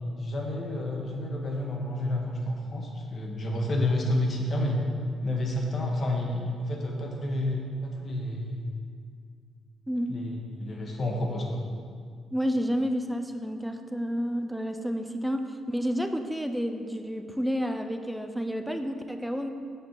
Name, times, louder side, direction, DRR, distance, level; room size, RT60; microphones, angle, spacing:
voice 1, 0.2-4.8 5.2-8.7 10.1-11.6, left 1 dB, 45° left, 0 dB, 1.2 m, -30 dB
voice 2, 9.9-10.2 12.3-19.5, equal, ahead, 7 dB, 0.6 m, -30 dB
6.7 x 6.4 x 4.4 m, 2.2 s
cardioid pair, 90°, 0 cm